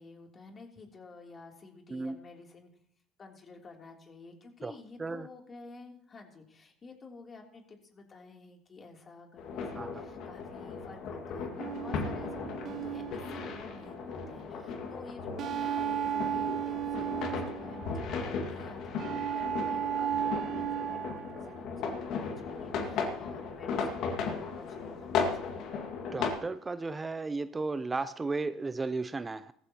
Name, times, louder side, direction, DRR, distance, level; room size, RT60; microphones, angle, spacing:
voice 1, 0.0-2.7 3.2-25.7, left 3 dB, 35° left, 1 dB, 3.1 m, -51 dB
sound 1, 9.4-26.3, left 5 dB, 60° left, 2.0 m, -36 dB
sound 2, 11.6-14.1 15.4-18.2 19.0-21.6, right 10 dB, 50° right, 1.0 m, -34 dB
voice 2, 26.1-29.5, right 3 dB, 20° right, 14 dB, 0.5 m, -34 dB
18.5 x 14.5 x 3.0 m, 0.70 s
hypercardioid pair, 70°, 0 cm